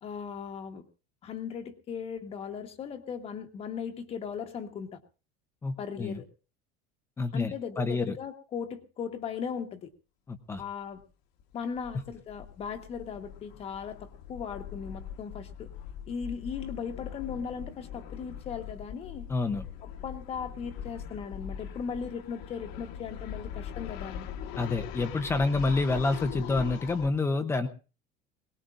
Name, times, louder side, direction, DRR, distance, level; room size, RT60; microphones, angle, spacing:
voice 1, 0.0-0.8 1.2-5.0 5.8-6.2 7.3-9.9 10.6-11.0 11.5-15.7 16.1-19.3 19.8-24.3, left 6 dB, 30° left, 5 dB, 1.3 m, -38 dB
voice 2, 5.6-6.2 7.2-8.2 10.3-10.6 19.3-19.6 24.6-27.7, left 3 dB, 10° left, 7 dB, 0.8 m, -28 dB
sound 1, 10.6-10.7 11.0-11.1 11.4-27.1, left 9 dB, 55° left, 1.4 m, -42 dB
22.0 x 19.0 x 2.5 m, 0.34 s
cardioid pair, 170°, 20 cm